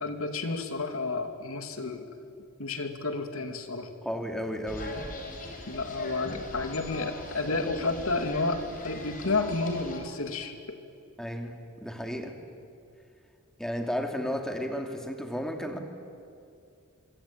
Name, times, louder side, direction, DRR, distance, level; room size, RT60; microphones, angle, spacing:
voice 1, 0.0-2.0 2.6-3.9 5.7-10.8, left 3 dB, 75° left, 7 dB, 2.5 m, -31 dB
voice 2, 4.0-5.0 11.2-12.3 13.6-15.8, equal, 5° left, 4 dB, 2.5 m, -33 dB
sound 1, 4.7-10.0, left 2 dB, 40° left, 4.8 m, -40 dB
26.0 x 24.0 x 8.7 m, 2.5 s
head